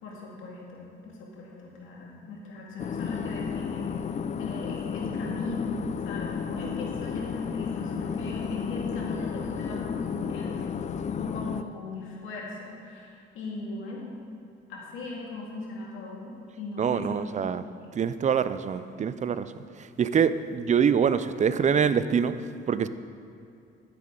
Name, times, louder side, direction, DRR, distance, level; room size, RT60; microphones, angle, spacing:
voice 1, 0.0-4.0 4.4-10.7 11.2-14.1 14.7-16.3 16.6-17.5 17.8-17.9, left 2 dB, 85° left, -3 dB, 2.1 m, -38 dB
sound 1, 2.8-11.6, left 7 dB, 35° left, 0.4 m, -32 dB
voice 2, 16.8-17.6 17.9-19.5 19.8-22.4 22.7-22.9, right 7 dB, 35° right, 13 dB, 0.5 m, -25 dB
12.0 x 9.3 x 3.8 m, 2.5 s
cardioid pair, 90°, 20 cm